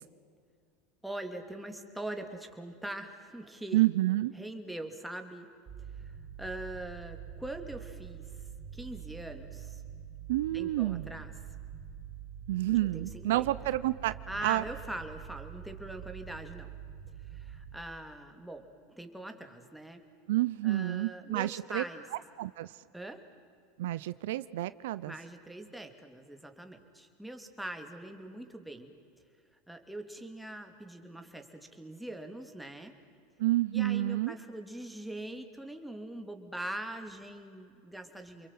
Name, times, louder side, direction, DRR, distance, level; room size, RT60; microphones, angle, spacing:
voice 1, 1.0-3.9 4.4-5.5 6.0-8.4 8.7-9.8 10.5-11.3 12.7-13.5 14.3-16.7 17.3-20.0 20.6-22.0 22.9-23.2 25.0-28.9 29.7-32.9 33.7-38.5, right 1 dB, ahead, 4 dB, 2.9 m, -42 dB
voice 2, 3.7-4.3 10.3-11.1 12.5-14.1 14.4-14.6 20.3-21.8 22.4-22.7 23.8-25.1 33.4-34.3, right 16 dB, 80° right, 16 dB, 0.6 m, -29 dB
sound 1, 5.7-17.8, right 9 dB, 30° right, 1.8 m, -46 dB
29.5 x 22.5 x 7.7 m, 2.2 s
supercardioid pair, 105°, 0 cm